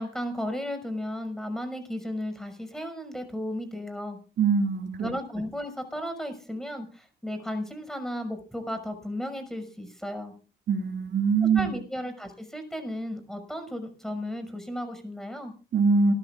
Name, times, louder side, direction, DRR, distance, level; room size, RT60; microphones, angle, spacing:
voice 1, 0.0-4.2 5.0-10.3 11.5-15.5, left 1 dB, ahead, 7 dB, 5.8 m, -34 dB
voice 2, 4.4-5.1 10.7-11.8 15.7-16.1, right 5 dB, 60° right, 5 dB, 2.4 m, -23 dB
27.5 x 13.5 x 2.5 m, 0.36 s
cardioid pair, 90°, 20 cm